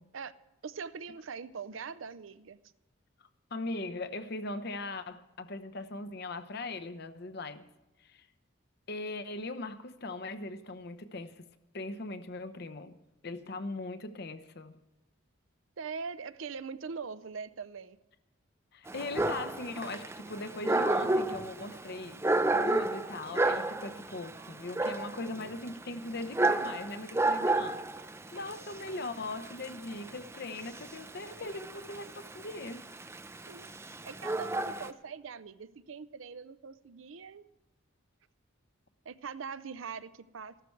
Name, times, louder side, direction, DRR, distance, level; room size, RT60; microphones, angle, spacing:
voice 1, 0.6-2.6 15.8-18.0 33.5-33.7 34.0-37.4 39.0-40.6, right 5 dB, 75° right, 0.6 m, -42 dB
voice 2, 3.5-7.7 8.0-8.3 8.9-11.5 11.7-13.0 13.2-14.8 18.7-22.2 22.5-32.8, left 2 dB, 55° left, 0.8 m, -40 dB
Dog, 18.9-34.9, right 2 dB, 15° right, 0.5 m, -32 dB
14.5 x 12.5 x 4.6 m
head